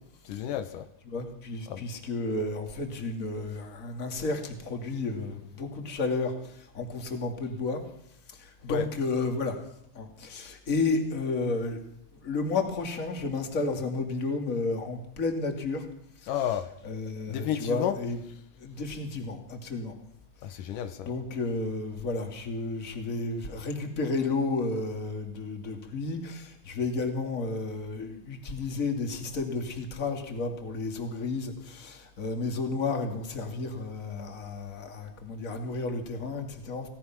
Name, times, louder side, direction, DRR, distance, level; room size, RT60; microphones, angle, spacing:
voice 1, 0.2-0.9 1.7-1.9 8.7-8.9 16.3-16.7 17.3-18.0 20.4-21.1, left 10 dB, 80° left, 10 dB, 2.6 m, -31 dB
voice 2, 1.1-7.8 8.4-9.6 9.9-11.8 12.1-15.9 16.2-18.2 18.6-19.9 21.0-36.9, left 3 dB, 25° left, 4 dB, 2.4 m, -32 dB
25.5 x 17.0 x 6.0 m, 0.75 s
omnidirectional pair, 3.8 m